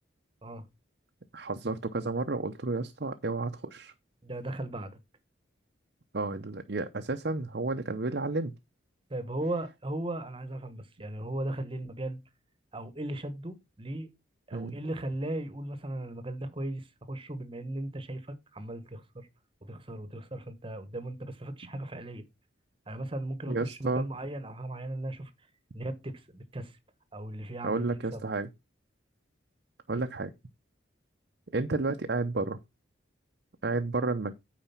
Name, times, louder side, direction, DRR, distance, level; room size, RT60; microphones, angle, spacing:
voice 1, 1.3-3.9 6.1-8.5 14.5-14.8 23.5-24.0 27.6-28.5 29.9-30.3 31.5-32.6 33.6-34.3, right 3 dB, 55° right, 0.7 m, -31 dB
voice 2, 4.2-5.0 9.1-12.2 12.7-14.1 14.5-19.3 19.6-22.2 22.9-25.3 25.7-26.8 27.1-28.2 29.9-30.0, right 1 dB, 25° right, 1.1 m, -37 dB
8.9 x 5.0 x 5.8 m
head